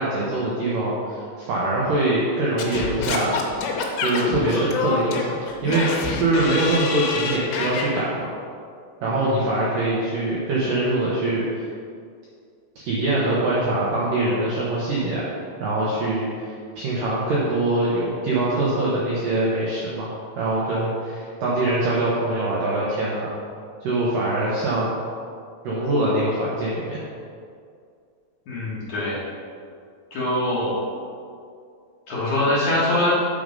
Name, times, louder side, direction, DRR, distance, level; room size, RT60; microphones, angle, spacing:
voice 1, 0.0-3.4 4.0-5.9 6.1-8.3 9.0-11.7 12.8-15.3 15.6-20.1 20.4-23.3 23.8-24.9 25.6-27.0, right 2 dB, 75° right, -6 dB, 2.0 m, -23 dB
Singing / Scratching (performance technique), 2.6-7.9, left 4 dB, 90° left, 3.3 m, -26 dB
voice 2, 28.5-29.2 30.1-30.8 32.1-33.1, left 1 dB, 55° left, -9 dB, 2.3 m, -23 dB
8.6 x 5.1 x 5.3 m, 2.3 s
omnidirectional pair, 5.4 m